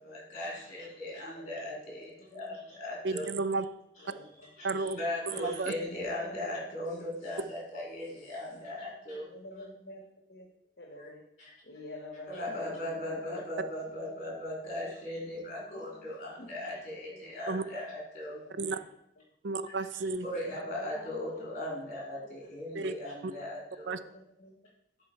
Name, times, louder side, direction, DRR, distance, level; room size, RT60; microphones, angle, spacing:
voice 1, 0.0-3.3 4.6-9.3 11.0-11.1 11.4-11.5 12.3-18.7 20.2-24.0, left 1 dB, 40° left, -4 dB, 3.2 m, -38 dB
voice 2, 1.3-2.6 4.0-4.9 5.4-6.7 8.0-8.6 9.3-10.0 10.3-10.5 10.8-11.2 11.6-13.2 14.1-14.2 15.6-16.8 17.1-17.2 18.3-18.8 20.4-21.6 22.1-22.3 22.8-23.0 24.0-24.6, left 1 dB, 55° left, 1 dB, 1.1 m, -48 dB
voice 3, 3.0-3.7 4.6-5.0 5.3-5.7 17.5-17.6 18.6-18.8 19.4-20.3 22.7-22.9 23.2-23.3 23.9-24.0, right 3 dB, 70° right, 13 dB, 0.4 m, -32 dB
10.5 x 4.2 x 4.4 m, 0.79 s
head